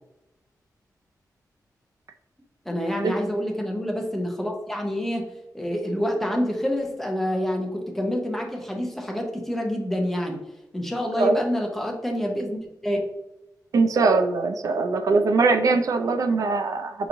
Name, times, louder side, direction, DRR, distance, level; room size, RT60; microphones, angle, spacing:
voice 1, 2.7-10.4 10.7-13.0, equal, 5° left, 1 dB, 0.6 m, -27 dB
voice 2, 13.7-17.1, right 3 dB, 60° right, 8 dB, 0.3 m, -22 dB
4.6 x 2.9 x 2.5 m, 0.93 s
wide cardioid pair, 150°, 7 cm